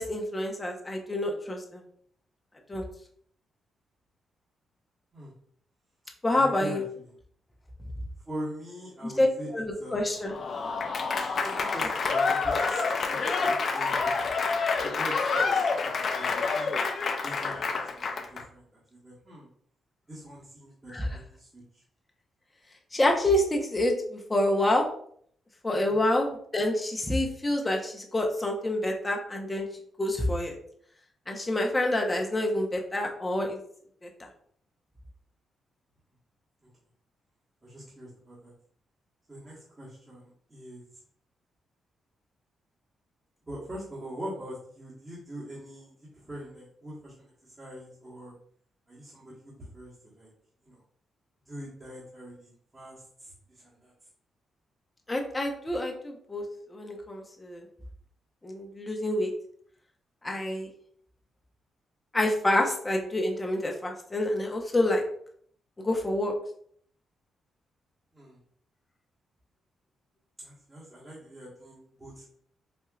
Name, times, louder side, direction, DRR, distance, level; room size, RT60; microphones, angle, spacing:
voice 1, 0.0-1.8 2.7-2.8 6.2-6.8 9.0-9.3 9.5-10.3 20.9-21.1 22.9-24.8 25.6-29.7 30.0-30.5 31.3-33.6 34.0-34.1 55.1-56.4 56.7-57.6 58.4-59.3 60.2-60.7 62.1-65.0 65.8-66.3, left 1 dB, 20° left, 2 dB, 0.9 m, -27 dB
voice 2, 6.3-7.1 8.3-10.2 11.4-14.4 14.8-15.6 16.1-16.7 17.2-19.5 20.1-21.8 25.8-26.0 36.6-36.7 37.6-38.5 39.3-40.8 43.5-47.1 47.4-48.3 48.9-50.3 50.6-50.8 51.4-53.9 68.1-68.4 70.4-72.2, equal, 25° right, -9 dB, 1.5 m, -43 dB
Applause / Crowd, 10.2-18.4, left 4 dB, 55° left, 0.4 m, -28 dB
4.3 x 2.7 x 2.4 m, 0.62 s
cardioid pair, 65°, 0 cm